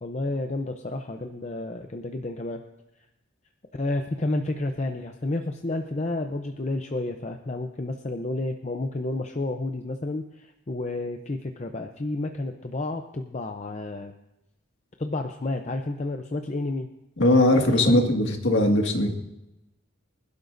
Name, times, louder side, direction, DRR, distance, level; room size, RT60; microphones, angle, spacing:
voice 1, 0.0-2.6 3.8-14.1 15.0-16.9 17.8-17.9, left 2 dB, 30° left, 4 dB, 0.6 m, -30 dB
voice 2, 17.2-19.2, left 1 dB, 60° left, 2 dB, 1.9 m, -20 dB
25.0 x 12.0 x 2.6 m, 0.92 s
head